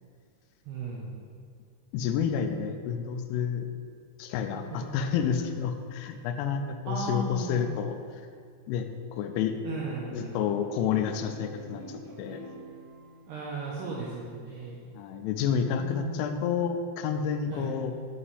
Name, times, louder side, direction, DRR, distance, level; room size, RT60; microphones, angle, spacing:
voice 1, 0.7-1.2 4.7-4.8 6.9-7.7 9.6-10.5 13.3-14.8 15.8-16.3 17.5-17.7, right 3 dB, 85° right, -5 dB, 2.3 m, -36 dB
voice 2, 1.9-3.7 4.2-8.0 8.7-8.9 9.1-9.5 10.1-12.4 14.9-17.9, left 7 dB, 85° left, 7 dB, 3.0 m, -29 dB
sound 1, 9.1-14.4, left 1 dB, 60° right, 2.2 m, -49 dB
9.8 x 5.0 x 3.3 m, 2.1 s
omnidirectional pair, 5.5 m